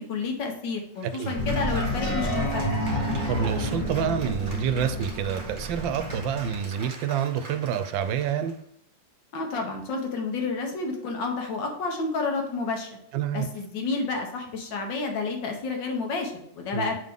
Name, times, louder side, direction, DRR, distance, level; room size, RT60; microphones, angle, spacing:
voice 1, 0.0-2.6 9.3-12.9 13.3-17.0, left 3 dB, 70° left, 2 dB, 1.9 m, -30 dB
Cheering / Applause, 1.0-8.5, right 3 dB, 25° right, 1.5 m, -39 dB
voice 2, 1.0-1.4 3.3-8.5 13.1-13.5 16.7-17.0, right 8 dB, 85° right, 11 dB, 1.3 m, -28 dB
sound 1, 1.3-6.5, left 1 dB, 40° left, 0.7 m, -30 dB
7.5 x 3.8 x 3.6 m, 0.74 s
omnidirectional pair, 2.0 m